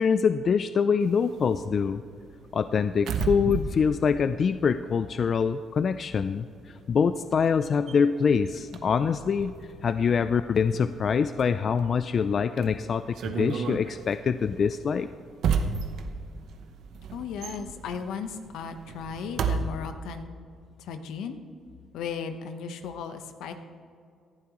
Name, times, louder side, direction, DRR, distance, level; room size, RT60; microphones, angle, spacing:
voice 1, 0.0-2.0 2.5-9.5 9.8-15.1, left 6 dB, 50° left, 12 dB, 0.3 m, -25 dB
sound 1, 1.0-5.4 5.7-19.6, right 6 dB, 75° right, 0.8 m, -34 dB
voice 2, 17.1-20.3 20.8-21.4 21.9-23.5, left 6 dB, 85° left, 8 dB, 0.9 m, -36 dB
18.0 x 11.5 x 3.0 m, 2.3 s
cardioid pair, 90°, 0 cm